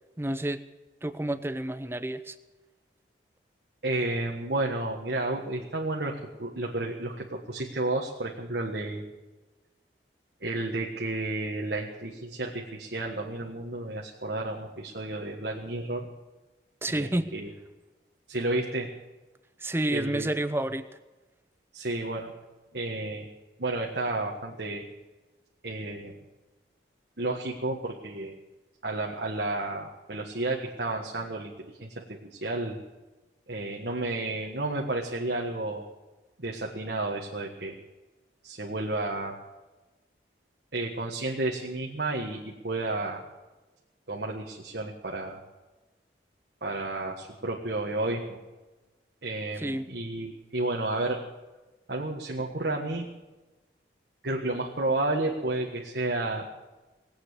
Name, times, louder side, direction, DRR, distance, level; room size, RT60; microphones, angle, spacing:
voice 1, 0.2-0.6 1.0-2.4 16.8-17.3 19.6-20.9 49.6-49.9, right 1 dB, 15° right, 12 dB, 0.6 m, -29 dB
voice 2, 3.8-9.0 10.4-16.1 16.9-17.5 18.3-18.9 19.9-20.4 21.7-22.3 22.7-23.3 23.6-24.8 25.6-26.1 27.2-28.3 28.8-31.5 31.8-32.8 33.5-35.9 36.4-37.7 38.4-39.4 40.7-43.2 44.1-45.4 46.6-48.4 49.2-51.2 51.9-53.1 54.2-56.5, right 2 dB, 70° right, -1 dB, 1.5 m, -31 dB
19.5 x 8.8 x 8.2 m, 1.1 s
head